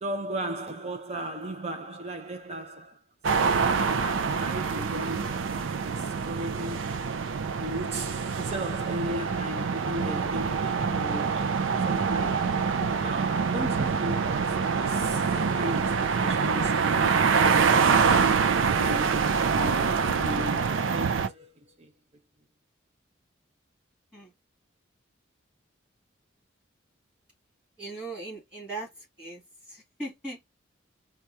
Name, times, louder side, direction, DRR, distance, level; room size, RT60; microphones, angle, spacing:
voice 1, 0.0-3.0 3.3-5.6 6.0-7.0 7.6-12.7 13.0-18.4 18.7-21.9, equal, 30° right, 0.6 m, -37 dB
sound 1, 3.2-21.3, right 5 dB, 80° right, 0.4 m, -25 dB
voice 2, 27.8-29.4 29.7-30.5, right 2 dB, 5° right, 2.1 m, -39 dB
4.5 x 2.3 x 2.7 m
head